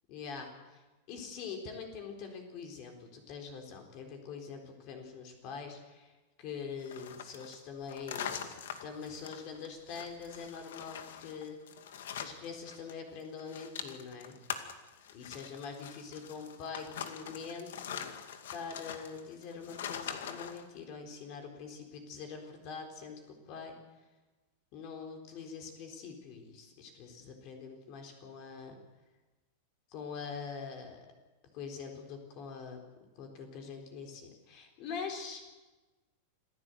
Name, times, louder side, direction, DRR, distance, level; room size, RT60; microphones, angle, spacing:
voice 1, 0.1-0.8 1.1-6.1 6.4-11.6 12.2-14.4 15.1-18.1 18.5-23.7 24.7-28.7 29.9-31.0 31.5-32.8 33.2-35.4, left 5 dB, 40° left, 4 dB, 4.1 m, -44 dB
sound 1, 6.8-12.9 13.2-20.6, left 8 dB, 85° left, 2.3 m, -43 dB
26.5 x 15.5 x 8.2 m, 1.2 s
supercardioid pair, 160°, 0 cm